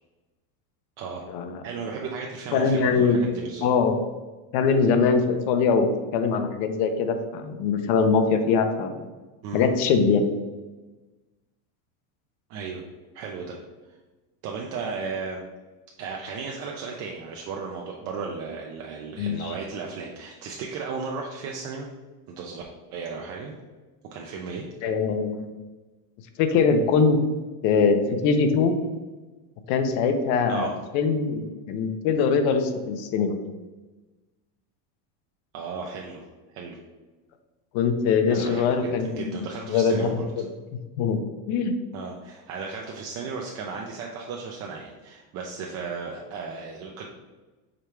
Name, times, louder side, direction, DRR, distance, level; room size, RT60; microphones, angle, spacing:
voice 1, 1.6-3.7 9.4-9.7 12.5-12.8 13.1-13.6 14.4-15.4 16.0-21.9 22.3-22.6 22.9-23.5 24.1-24.7 30.5-30.8 35.5-36.3 36.5-36.8 38.3-40.3 41.9-47.1, right 5 dB, 35° right, 0 dB, 0.4 m, -35 dB
voice 2, 2.5-3.3 3.6-4.0 4.5-5.9 6.1-9.0 9.5-10.3 19.2-19.5 24.8-25.5 26.4-27.2 27.6-28.7 29.7-30.7 30.9-33.4 37.7-39.3 39.7-40.5 41.0-41.2 41.5-41.7, left 5 dB, 55° left, 7 dB, 0.6 m, -22 dB
5.0 x 2.3 x 4.4 m, 1.2 s
cardioid pair, 150°, 44 cm